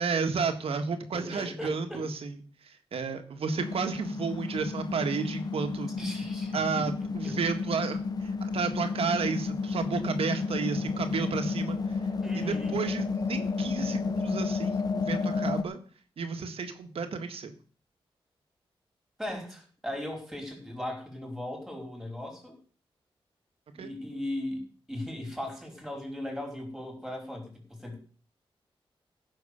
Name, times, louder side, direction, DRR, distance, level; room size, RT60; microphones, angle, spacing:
voice 1, 0.0-2.3 2.6-5.9 6.5-12.1 12.5-15.8 16.2-17.5 23.8-23.9, right 5 dB, 90° right, 7 dB, 1.7 m, -32 dB
voice 2, 1.1-2.1 6.0-6.9 7.2-7.4 12.2-12.8 19.2-22.6 23.7-28.0, left 1 dB, ahead, 1 dB, 4.9 m, -38 dB
sound 1, 3.6-15.6, left 4 dB, 45° left, 0.9 m, -31 dB
15.5 x 6.4 x 6.8 m, 0.42 s
wide cardioid pair, 140°, 10 cm